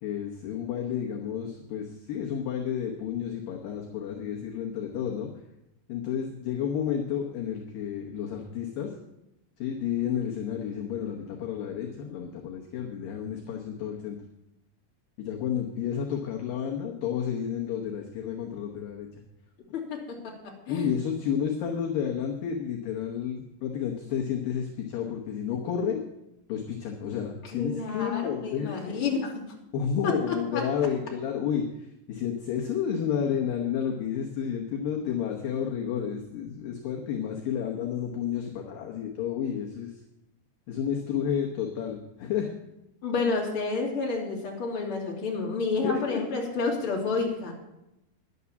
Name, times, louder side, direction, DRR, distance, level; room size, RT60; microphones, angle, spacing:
voice 1, 0.0-5.3 5.9-8.9 9.6-14.2 15.2-19.1 20.7-26.0 26.5-29.1 29.7-39.9 40.7-42.5 45.8-46.2, left 8 dB, 65° left, 0 dB, 2.5 m, -31 dB
voice 2, 19.7-20.9 27.5-29.3 30.0-30.6 43.0-47.5, left 4 dB, 35° left, -2 dB, 3.0 m, -30 dB
11.0 x 9.7 x 7.0 m, 0.89 s
omnidirectional pair, 4.8 m